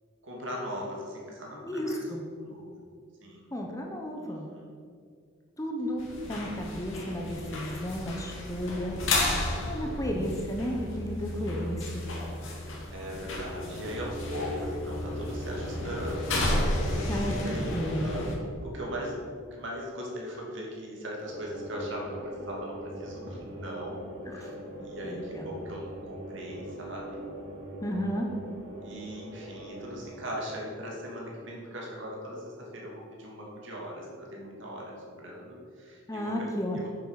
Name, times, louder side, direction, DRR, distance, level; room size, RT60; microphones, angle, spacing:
voice 1, 0.2-2.9 3.2-3.5 4.2-4.7 9.5-10.1 12.6-17.1 17.3-19.1 19.5-24.0 24.3-24.5 24.8-27.3 28.8-36.9, equal, 60° right, -3 dB, 2.8 m, -39 dB
voice 2, 1.6-2.2 3.5-4.5 5.6-9.0 9.6-12.0 17.1-18.1 24.2-24.5 25.0-25.5 27.8-28.3 36.1-36.8, equal, 15° left, 1 dB, 1.0 m, -33 dB
sound 1, 6.0-18.3, left 1 dB, 65° left, 2.4 m, -33 dB
sound 2, 13.2-19.2 21.2-30.1, equal, 85° right, 2.7 m, -42 dB
8.8 x 7.6 x 6.6 m, 2.2 s
head